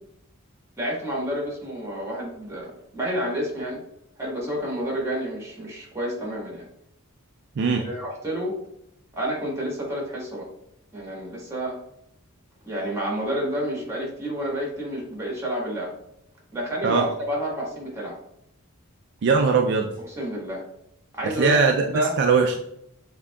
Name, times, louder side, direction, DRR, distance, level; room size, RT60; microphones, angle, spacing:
voice 1, 0.8-3.8 4.2-6.7 7.7-8.6 9.1-10.5 10.9-11.8 12.6-15.9 16.5-18.2 20.0-20.6 21.1-21.6 21.9-22.2, equal, 15° right, -3 dB, 1.3 m, -29 dB
voice 2, 19.2-19.9 21.2-21.9 22.2-22.6, right 5 dB, 50° right, 3 dB, 0.3 m, -20 dB
7.2 x 2.7 x 2.3 m, 0.76 s
head